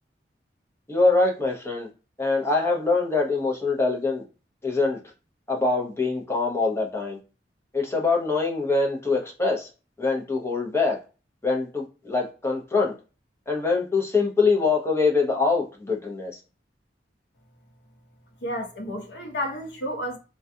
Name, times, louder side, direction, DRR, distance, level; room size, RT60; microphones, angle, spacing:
voice 1, 0.9-1.9 2.2-4.2 4.6-5.0 5.5-7.2 7.7-9.7 10.0-11.0 11.4-12.9 13.5-16.3, left 3 dB, 15° left, 0.7 m, -24 dB
voice 2, 18.4-20.2, equal, 75° left, 0.7 m, -31 dB
2.3 x 2.3 x 2.6 m
head